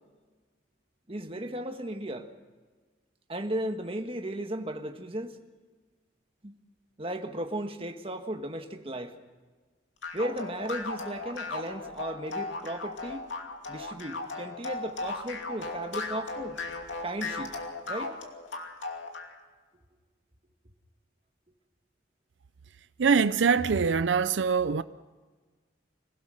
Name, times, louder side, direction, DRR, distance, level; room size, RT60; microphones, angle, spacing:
voice 1, 1.1-2.3 3.3-5.4 6.4-6.6 7.0-9.1 10.1-13.3 13.7-16.6 17.0-17.6 17.9-18.1, right 1 dB, 30° right, 1.5 m, -35 dB
sound 1, 10.0-19.3, left 3 dB, 85° left, 2.7 m, -36 dB
voice 2, 23.0-24.8, right 5 dB, 85° right, 0.5 m, -23 dB
25.5 x 17.0 x 6.4 m
head